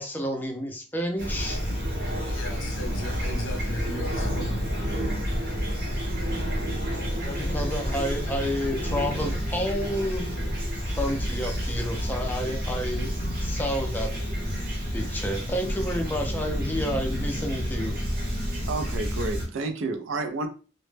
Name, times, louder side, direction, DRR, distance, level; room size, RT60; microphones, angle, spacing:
voice 1, 0.0-1.6 7.2-10.3 11.0-14.1 14.9-17.9, equal, 10° left, 0.4 m, -30 dB
Fowl / Chirp tweet, 1.2-19.5, equal, 50° right, 0.7 m, -29 dB
voice 2, 2.3-4.7, equal, 80° left, 0.5 m, -36 dB
voice 3, 18.7-20.5, right 3 dB, 80° right, 0.4 m, -30 dB
2.0 x 2.0 x 3.2 m
head